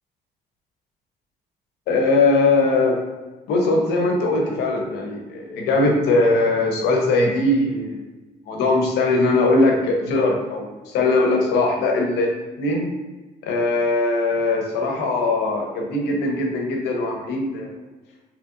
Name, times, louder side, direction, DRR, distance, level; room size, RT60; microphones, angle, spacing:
voice 1, 1.9-3.0 3.5-8.0 8.5-12.9 13.4-17.8, left 2 dB, 85° left, 1 dB, 0.8 m, -20 dB
3.8 x 3.1 x 2.5 m, 1.2 s
cardioid pair, 110°, 17 cm